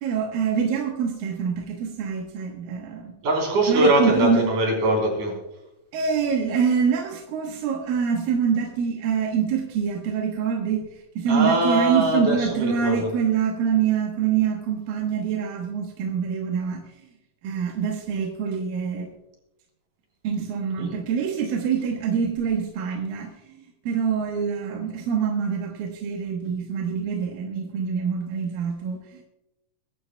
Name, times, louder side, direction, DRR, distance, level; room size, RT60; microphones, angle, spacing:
voice 1, 0.0-3.1 3.7-4.4 5.9-10.9 11.2-16.9 17.4-19.1 20.2-23.5 23.9-29.2, right 6 dB, 80° right, 1 dB, 3.0 m, -25 dB
voice 2, 3.2-5.3 11.3-13.1 20.8-20.9, right 1 dB, 60° right, 0 dB, 5.1 m, -22 dB
22.5 x 11.0 x 2.3 m, 0.91 s
omnidirectional pair, 4.1 m